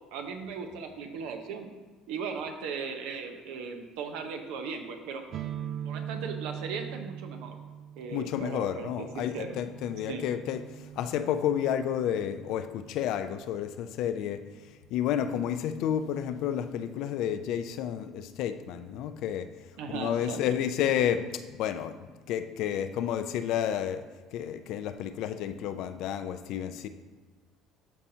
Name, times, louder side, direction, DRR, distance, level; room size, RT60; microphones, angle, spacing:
voice 1, 0.1-1.7 2.1-5.2 5.9-7.6 8.0-9.6 10.1-10.2 19.8-20.4, right 5 dB, 75° right, 5 dB, 0.8 m, -37 dB
sound 1, 5.3-12.9, right 9 dB, 55° right, 0.4 m, -42 dB
voice 2, 8.1-19.5 19.9-24.0 24.3-26.9, left 9 dB, 70° left, 10 dB, 0.4 m, -31 dB
12.0 x 4.3 x 2.8 m, 1.4 s
supercardioid pair, 80°, 0 cm